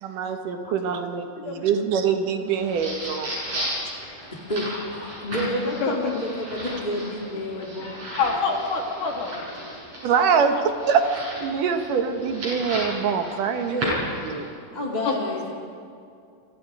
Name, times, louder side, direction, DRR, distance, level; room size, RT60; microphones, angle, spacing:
voice 1, 0.0-3.3 10.0-10.6 10.9-13.8 14.2-14.5, right 6 dB, 70° right, 6 dB, 2.9 m, -24 dB
voice 2, 0.7-1.0 4.5-4.7 4.9-8.0 9.8-9.9 13.6-14.0 14.7-15.5, left 1 dB, 15° left, -2 dB, 1.8 m, -29 dB
voice 3, 1.4-1.7 5.8-5.9 7.8-9.4 15.0-15.1, left 4 dB, 65° left, 0 dB, 4.3 m, -27 dB
sound 1, 2.5-14.5, equal, 40° right, 8.6 m, -35 dB
28.5 x 24.5 x 4.9 m, 2.4 s
omnidirectional pair, 4.0 m